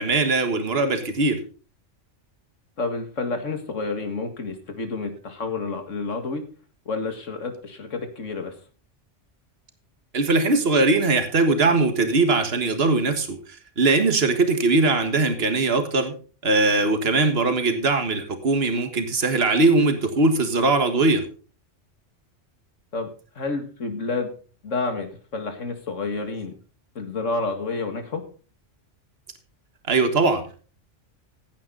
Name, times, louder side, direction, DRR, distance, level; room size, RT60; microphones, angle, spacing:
voice 1, 0.0-1.4 10.1-13.4 13.8-16.1 16.4-21.2 29.9-30.4, right 3 dB, 55° right, 7 dB, 1.8 m, -20 dB
voice 2, 2.8-6.4 6.9-8.5 22.9-23.1 23.4-24.3 24.6-26.5 27.0-28.2, left 3 dB, 90° left, 7 dB, 2.3 m, -29 dB
15.0 x 9.5 x 3.9 m, 0.38 s
omnidirectional pair, 1.3 m